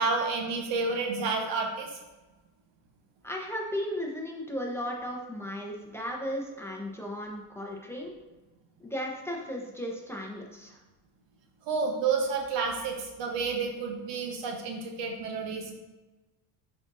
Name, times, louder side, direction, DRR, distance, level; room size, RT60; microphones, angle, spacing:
voice 1, 0.0-2.0 11.6-15.7, right 4 dB, 65° right, 2 dB, 1.3 m, -30 dB
voice 2, 3.2-8.1 8.8-10.8, equal, 5° left, -2 dB, 1.0 m, -35 dB
9.6 x 4.3 x 2.7 m, 1.1 s
supercardioid pair, 100°, 47 cm